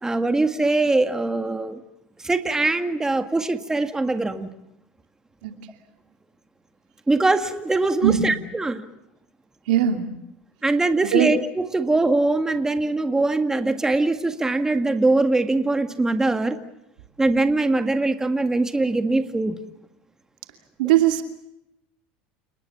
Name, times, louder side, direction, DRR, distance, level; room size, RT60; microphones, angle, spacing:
voice 1, 0.0-1.8 2.2-4.5 7.1-8.9 10.6-16.6 17.2-19.6, right 2 dB, 10° right, 8 dB, 1.9 m, -22 dB
voice 2, 9.7-10.1 11.1-11.3 20.8-21.2, right 11 dB, 80° right, 6 dB, 2.7 m, -19 dB
30.0 x 20.0 x 7.2 m, 0.84 s
supercardioid pair, 95°, 5 cm